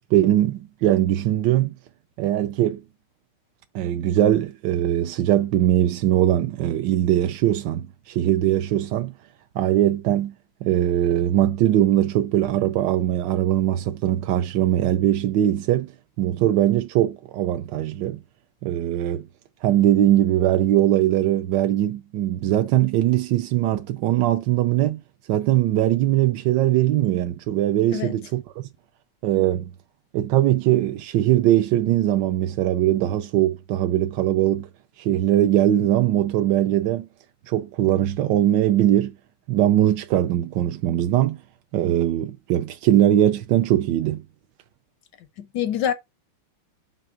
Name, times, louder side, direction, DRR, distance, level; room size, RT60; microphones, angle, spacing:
voice 1, 0.1-1.7 2.2-2.8 3.7-9.1 9.6-10.3 10.6-15.9 16.2-18.2 18.6-19.3 19.6-25.0 25.3-28.7 29.2-29.7 30.1-34.7 35.0-37.1 37.5-39.1 39.5-41.4 41.7-44.2, right 12 dB, 75° right, 1.0 m, -21 dB
voice 2, 45.4-45.9, left 9 dB, 75° left, 1.0 m, -25 dB
6.1 x 3.2 x 4.9 m
omnidirectional pair, 2.4 m